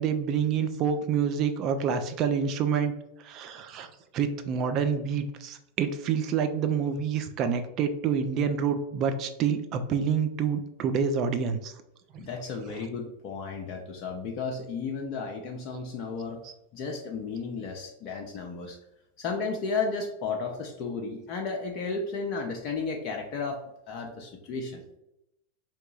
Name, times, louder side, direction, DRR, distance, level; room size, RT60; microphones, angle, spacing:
voice 1, 0.0-2.9 3.2-3.9 4.1-11.7 12.1-12.3 16.4-16.5, right 7 dB, 35° right, 8 dB, 0.4 m, -27 dB
voice 2, 12.2-16.4 16.7-18.8 19.2-23.6 23.9-24.8, left 4 dB, 40° left, 1 dB, 0.5 m, -33 dB
4.5 x 2.9 x 2.4 m, 0.85 s
figure-of-eight pair, 90°, 0 cm